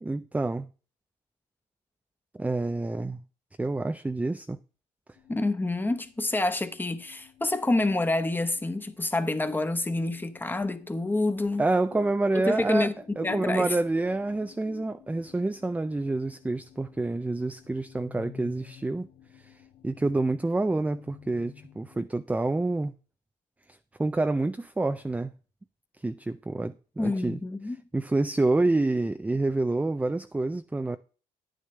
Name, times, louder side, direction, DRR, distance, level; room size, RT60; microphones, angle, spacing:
voice 1, 0.0-0.7 2.4-3.2 3.6-4.6 11.6-12.9 13.2-19.1 19.8-22.9 24.0-25.3 26.0-27.4 27.9-31.0, right 2 dB, 10° right, 0.5 m, -27 dB
sound 1, 5.1-22.0, left 9 dB, 80° left, 1.6 m, -52 dB
voice 2, 5.3-11.7 12.4-12.9 13.2-13.8 27.0-27.8, left 2 dB, 10° left, 1.1 m, -27 dB
9.9 x 9.6 x 3.3 m
cardioid pair, 110°, 17 cm